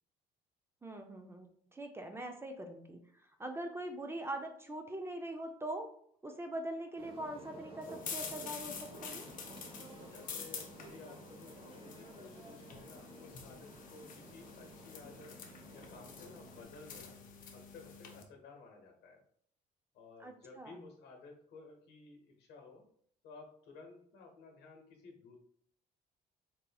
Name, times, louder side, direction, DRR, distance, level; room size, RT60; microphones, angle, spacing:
voice 1, 0.8-3.0 3.4-5.9 6.2-9.3 20.2-20.8, right 1 dB, 15° right, 5 dB, 0.4 m, -42 dB
sound 1, 7.0-16.6, right 1 dB, 35° right, 0.8 m, -53 dB
sound 2, 7.8-18.2, left 6 dB, 50° left, 0.6 m, -48 dB
voice 2, 10.1-15.3 15.7-17.3 17.5-19.2 19.9-22.9 23.2-25.4, left 3 dB, 75° left, 3 dB, 0.9 m, -55 dB
4.0 x 2.7 x 2.2 m, 0.63 s
cardioid pair, 110°, 17 cm